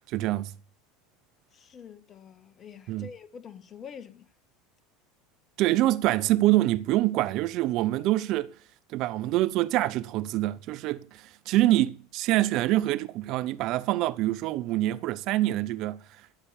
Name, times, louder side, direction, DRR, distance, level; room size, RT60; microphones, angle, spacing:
voice 1, 0.1-0.5 2.9-3.1 5.6-8.5 8.9-16.0, right 16 dB, 55° right, 0.8 m, -25 dB
voice 2, 1.5-4.3, left 7 dB, 35° left, 1.8 m, -46 dB
14.0 x 7.0 x 7.0 m
hypercardioid pair, 80°, 0 cm